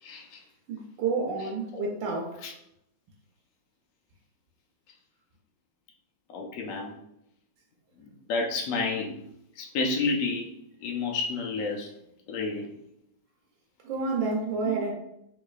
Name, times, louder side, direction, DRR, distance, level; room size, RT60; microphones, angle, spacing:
voice 1, 0.0-0.4 2.4-2.5 6.3-6.9 8.0-9.2 9.6-10.5 10.8-11.9 12.3-12.7 14.6-14.8, left 3 dB, 75° left, 0 dB, 0.8 m, -30 dB
voice 2, 0.7-2.4 13.8-14.9, right 4 dB, 85° right, 0 dB, 1.3 m, -29 dB
3.7 x 3.1 x 2.4 m, 0.79 s
omnidirectional pair, 2.0 m